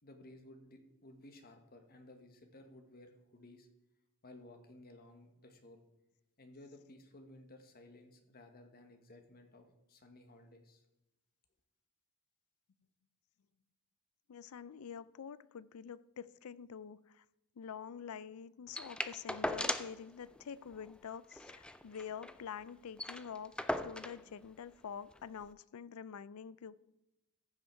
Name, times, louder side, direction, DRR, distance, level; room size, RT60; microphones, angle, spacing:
voice 1, 0.0-3.7 4.2-5.8 6.4-10.8, left 1 dB, 45° left, 5 dB, 1.4 m, -57 dB
voice 2, 14.3-17.2 17.6-26.8, left 7 dB, 70° left, 18 dB, 0.4 m, -47 dB
sound 1, 18.7-20.0 20.4-20.5 20.7-20.9 21.3-22.4 22.7-22.8 23.0-24.2 25.1-25.2, left 1 dB, 5° left, 0.3 m, -38 dB
14.5 x 5.8 x 4.5 m, 0.94 s
head